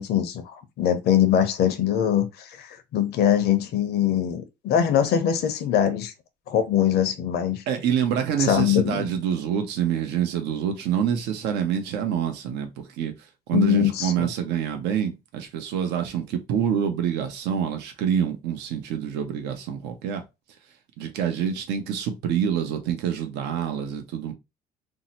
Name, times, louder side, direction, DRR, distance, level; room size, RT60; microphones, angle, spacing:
voice 1, 0.0-6.1 6.5-7.6 8.4-9.1 13.5-14.3, left 10 dB, 70° left, 0.7 m, -22 dB
voice 2, 7.7-20.2 21.0-24.3, right 8 dB, 85° right, 0.7 m, -26 dB
2.7 x 2.0 x 4.0 m
cardioid pair, 110°, 17 cm